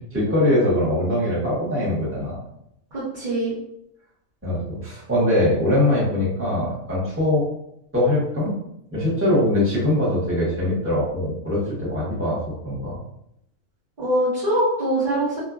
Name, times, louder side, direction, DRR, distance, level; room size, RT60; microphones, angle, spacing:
voice 1, 0.1-2.4 4.4-7.4 7.9-8.5 8.9-13.0, left 1 dB, 10° right, -8 dB, 1.0 m, -22 dB
voice 2, 2.9-3.5 14.0-15.4, right 1 dB, 35° right, -12 dB, 1.1 m, -23 dB
2.8 x 2.5 x 2.4 m, 0.76 s
omnidirectional pair, 1.4 m